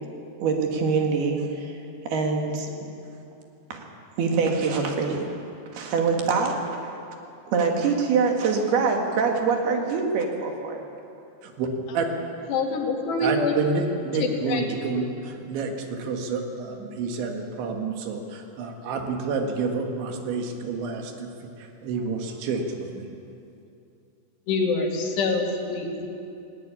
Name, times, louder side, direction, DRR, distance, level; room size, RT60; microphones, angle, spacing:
voice 1, 0.4-1.8 2.1-2.9 3.7-3.9 4.2-5.4 5.7-7.0 7.5-10.8, right 5 dB, 65° right, 2 dB, 3.7 m, -24 dB
voice 2, 12.5-13.5 14.2-14.6 24.5-26.1, left 3 dB, 70° left, 2 dB, 4.2 m, -25 dB
voice 3, 13.2-21.3 21.6-23.1, right 4 dB, 85° right, 3 dB, 4.2 m, -29 dB
18.5 x 18.0 x 9.7 m, 2.7 s
omnidirectional pair, 5.1 m